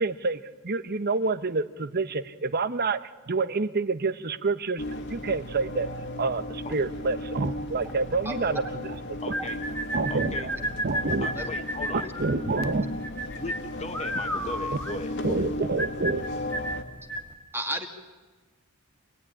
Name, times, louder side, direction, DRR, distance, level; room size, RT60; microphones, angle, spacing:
voice 1, 0.0-3.0 3.3-4.8 5.1-5.9 6.2-8.9 9.9-10.5 10.8-11.3 11.9-12.9 15.2-16.3, right 3 dB, 45° right, 13 dB, 1.0 m, -28 dB
sound 1, 4.8-16.8, left 1 dB, 55° left, 2.1 m, -36 dB
voice 2, 8.3-8.6 11.3-11.5 12.0-12.1 17.5-17.9, right 1 dB, 10° right, 3 dB, 1.9 m, -33 dB
voice 3, 9.2-9.6 10.1-10.5 11.2-12.1 13.3-15.5, left 2 dB, 30° left, 7 dB, 1.6 m, -37 dB
sound 2, 9.3-17.3, equal, 10° left, 1.6 m, -33 dB
27.0 x 19.0 x 10.0 m, 1.3 s
head